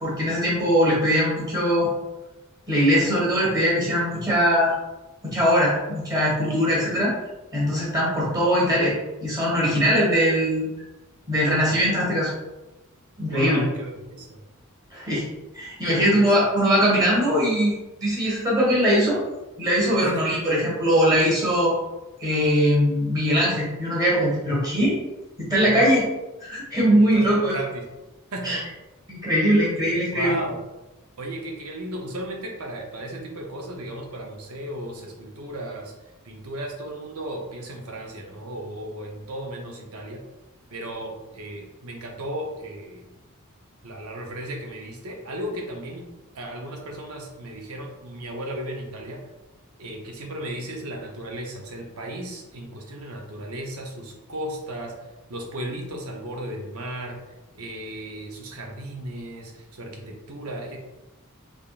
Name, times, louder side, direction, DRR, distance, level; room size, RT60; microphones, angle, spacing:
voice 1, 0.0-1.9 2.7-4.7 5.2-7.1 7.5-8.9 9.2-10.7 11.3-12.3 13.2-13.6 14.9-15.3 15.5-19.2 19.6-21.8 22.2-25.0 25.4-26.0 26.4-27.6 28.4-28.6 29.1-30.4, equal, 20° right, -5 dB, 1.4 m, -21 dB
voice 2, 13.3-14.4 15.8-16.5 20.0-20.3 25.6-26.0 26.9-27.8 28.3-28.6 30.1-30.6 31.2-35.9 36.2-40.2 40.7-43.1 43.8-46.1 46.3-49.2 49.8-54.9 55.3-57.2 57.5-60.8, right 1 dB, 80° right, 1 dB, 0.8 m, -35 dB
3.6 x 3.5 x 2.4 m, 1.0 s
head